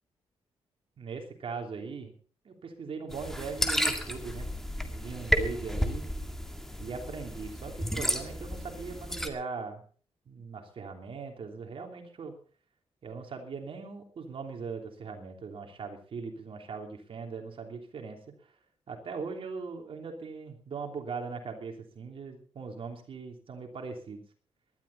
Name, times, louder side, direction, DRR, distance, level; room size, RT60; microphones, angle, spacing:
voice 1, 1.0-2.1 2.4-4.5 4.9-6.0 6.8-9.8 10.3-12.4 13.0-18.5 18.9-24.2, right 5 dB, 60° right, 3 dB, 3.2 m, -40 dB
sound 1, 3.1-9.3, equal, 5° left, 2.0 m, -32 dB
19.5 x 12.0 x 4.2 m, 0.42 s
cardioid pair, 110°, 11 cm